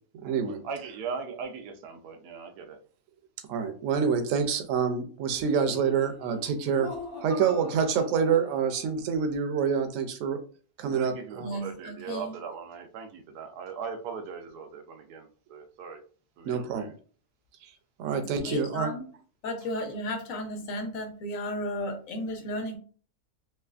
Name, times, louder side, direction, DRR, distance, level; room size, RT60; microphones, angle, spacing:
voice 1, 0.1-0.6 3.5-6.9 7.2-10.4 10.8-11.5 16.4-16.9 17.6-17.7 18.0-18.9, right 6 dB, 70° right, 7 dB, 0.9 m, -27 dB
voice 2, 0.6-2.8 10.8-16.0 16.4-16.9, right 6 dB, 90° right, 6 dB, 1.2 m, -39 dB
Laughter, 5.3-9.0, left 2 dB, 25° left, 0.5 m, -42 dB
voice 3, 11.4-12.4 18.1-19.1 19.4-22.8, left 1 dB, 65° left, 5 dB, 1.1 m, -34 dB
3.3 x 3.0 x 2.4 m, 0.42 s
omnidirectional pair, 1.6 m